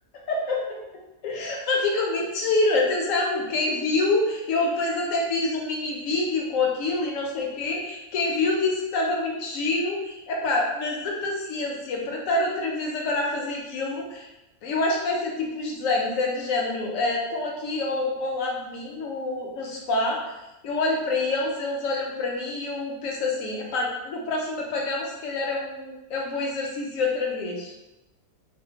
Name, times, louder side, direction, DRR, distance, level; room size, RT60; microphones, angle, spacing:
voice 1, 0.3-0.8 1.2-14.3 14.6-20.2 20.6-27.7, left 2 dB, 70° left, -1 dB, 0.9 m, -26 dB
2.7 x 2.0 x 2.8 m, 0.97 s
omnidirectional pair, 1.6 m